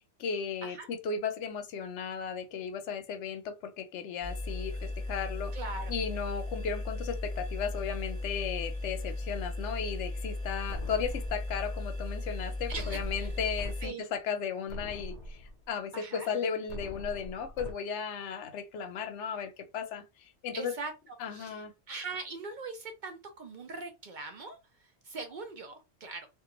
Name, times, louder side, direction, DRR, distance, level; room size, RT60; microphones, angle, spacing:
voice 1, 0.2-5.5 5.9-15.4 15.7-20.0 20.4-20.7 21.2-21.7, left 6 dB, 90° left, 0.9 m, -35 dB
sound 1, 4.2-13.9, left 2 dB, 35° right, 1.0 m, -36 dB
voice 2, 5.5-5.9 12.7-13.3 13.8-14.1 15.9-16.3 20.5-26.3, right 4 dB, 55° right, 0.6 m, -41 dB
sound 2, 10.7-11.7 12.7-13.7 14.2-14.3 14.7-15.7 16.7-17.7, left 1 dB, 55° left, 0.5 m, -43 dB
2.4 x 2.2 x 2.9 m
omnidirectional pair, 1.2 m